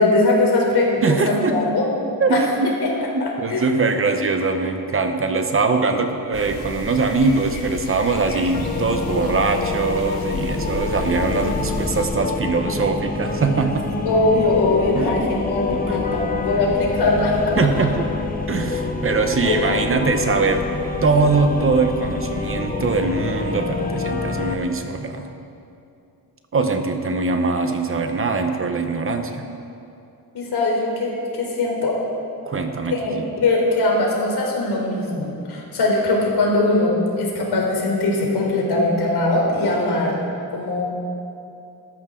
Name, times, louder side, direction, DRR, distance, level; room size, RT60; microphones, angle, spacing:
voice 1, 0.0-1.9 2.3-2.4 3.2-3.7 11.3-11.5 14.0-17.5 19.4-20.0 30.3-32.0 32.9-40.2 40.5-40.9, left 2 dB, 85° left, -2 dB, 3.6 m, -21 dB
voice 2, 1.0-1.6 2.2-2.7 3.4-13.9 14.9-15.3 15.7-16.3 17.6-18.1 18.5-20.7 21.0-25.3 26.5-29.5 32.4-33.3, right 4 dB, 35° right, 6 dB, 0.9 m, -22 dB
sound 1, 6.3-12.1, left 3 dB, 70° left, 2.2 m, -33 dB
sound 2, 8.5-24.5, left 4 dB, 25° left, 0.8 m, -27 dB
18.5 x 13.5 x 3.8 m, 2.6 s
wide cardioid pair, 175°, 38 cm